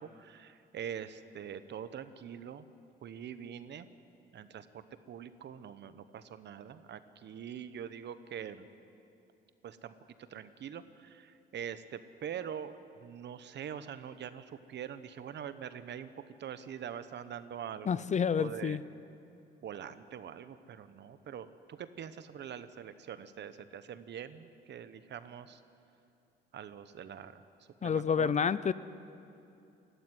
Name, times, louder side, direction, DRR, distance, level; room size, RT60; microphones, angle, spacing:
voice 1, 0.0-2.6 3.0-3.9 4.3-8.7 9.6-12.7 13.0-16.1 16.4-18.1 18.4-18.8 19.6-25.6 26.5-27.4 27.8-28.5, right 8 dB, 60° right, 12 dB, 1.0 m, -44 dB
voice 2, 17.9-18.8 27.8-28.7, left 7 dB, 35° left, 17 dB, 0.6 m, -29 dB
19.5 x 14.0 x 9.8 m, 2.7 s
cardioid pair, 90°, 20 cm